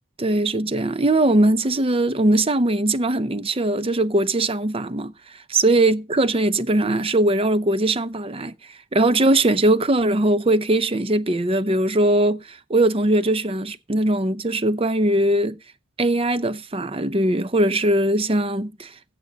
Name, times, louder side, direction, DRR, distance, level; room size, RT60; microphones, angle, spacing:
voice 1, 0.2-15.6 16.0-18.9, right 1 dB, 25° right, 0.6 m, -20 dB
15.5 x 6.7 x 4.1 m
head